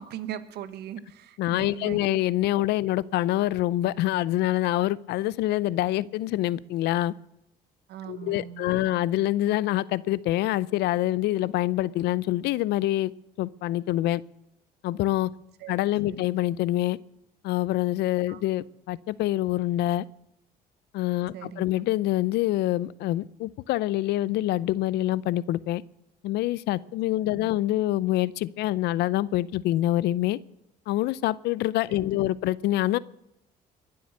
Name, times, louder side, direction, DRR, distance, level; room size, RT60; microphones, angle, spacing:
voice 1, 0.0-2.2 7.9-9.0 15.6-15.7 16.1-16.3 18.3-18.4 21.3-21.6 27.1-27.6 31.9-32.3, right 10 dB, 75° right, 12 dB, 1.3 m, -40 dB
voice 2, 1.4-7.1 8.0-13.1 13.4-14.2 14.8-15.3 15.7-17.0 17.4-20.0 20.9-25.8 26.2-30.4 30.9-33.0, left 15 dB, 80° left, 21 dB, 0.5 m, -26 dB
22.0 x 7.8 x 6.5 m, 0.85 s
cardioid pair, 90°, 17 cm